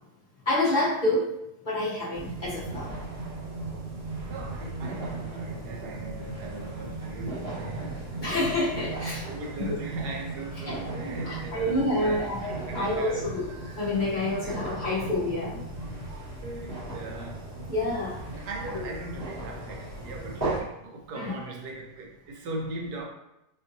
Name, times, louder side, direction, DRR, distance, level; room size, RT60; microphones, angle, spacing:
voice 1, 0.5-1.3 1.6-2.9 8.2-9.3 10.7-10.8 11.2-13.4 13.8-15.6 17.7-18.2 18.7-18.9 21.1-21.3, left 1 dB, 70° left, -8 dB, 0.4 m, -28 dB
sound 1, 2.1-20.6, right 2 dB, 35° right, 0.7 m, -37 dB
voice 2, 4.1-13.3 14.2-15.1 16.4-17.5 18.3-23.1, right 2 dB, 70° right, 1 dB, 1.0 m, -39 dB
4.3 x 2.6 x 2.6 m, 0.85 s
omnidirectional pair, 2.0 m